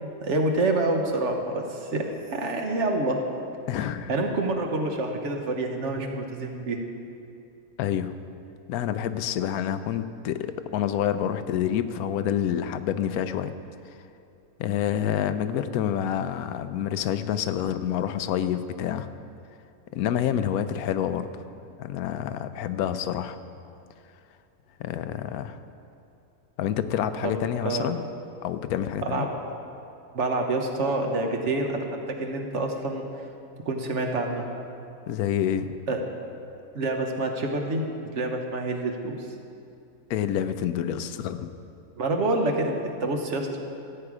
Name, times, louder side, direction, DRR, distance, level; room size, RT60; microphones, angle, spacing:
voice 1, 0.0-3.2 4.1-6.8 27.2-27.3 27.6-28.1 29.0-29.3 30.1-33.0 33.6-34.5 35.9-36.0 36.7-37.9 38.1-39.3 42.0-43.6, right 2 dB, 55° right, 3 dB, 1.2 m, -27 dB
voice 2, 3.7-4.1 7.8-8.1 8.7-13.5 14.6-19.1 19.9-21.4 21.8-23.4 24.8-25.6 26.6-28.0 28.4-29.3 35.1-35.7 40.1-41.5, left 10 dB, 80° left, 11 dB, 1.0 m, -28 dB
14.5 x 8.4 x 4.8 m, 2.6 s
omnidirectional pair, 1.5 m